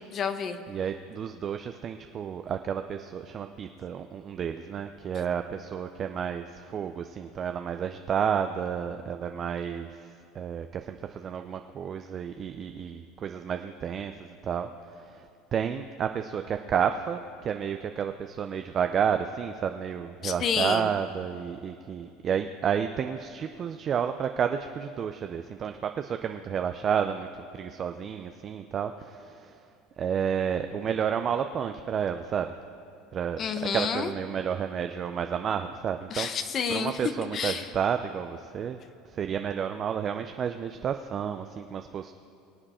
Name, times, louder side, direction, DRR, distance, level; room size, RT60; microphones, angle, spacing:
voice 1, 0.1-0.6 20.2-20.9 33.4-34.1 36.1-37.0 37.3-37.7, left 6 dB, 40° left, 9 dB, 0.9 m, -29 dB
voice 2, 0.7-15.3 15.5-29.6 30.0-32.5 33.1-33.4 33.7-36.3 36.7-38.8 39.1-42.2, right 8 dB, 35° right, 7 dB, 0.5 m, -31 dB
23.0 x 7.8 x 4.3 m, 2.4 s
supercardioid pair, 115°, 0 cm